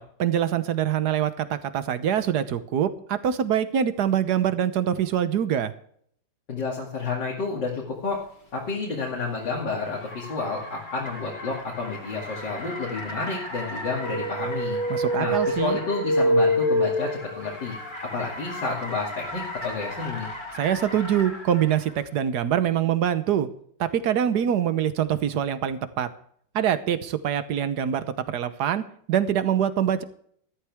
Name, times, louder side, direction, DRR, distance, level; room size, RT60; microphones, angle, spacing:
voice 1, 0.0-5.7 14.9-15.8 20.5-23.5 23.8-26.1 26.5-30.0, right 9 dB, 65° right, 12 dB, 1.4 m, -24 dB
voice 2, 6.5-8.2 8.5-14.8 15.2-17.1 17.4-17.8 18.1-20.3, left 4 dB, 65° left, -3 dB, 3.2 m, -30 dB
Car, 8.1-22.1, left 1 dB, 25° left, 2.1 m, -38 dB
sound 1, 13.9-17.6, equal, 35° right, 1.5 m, -24 dB
14.5 x 13.0 x 3.6 m, 0.63 s
omnidirectional pair, 2.0 m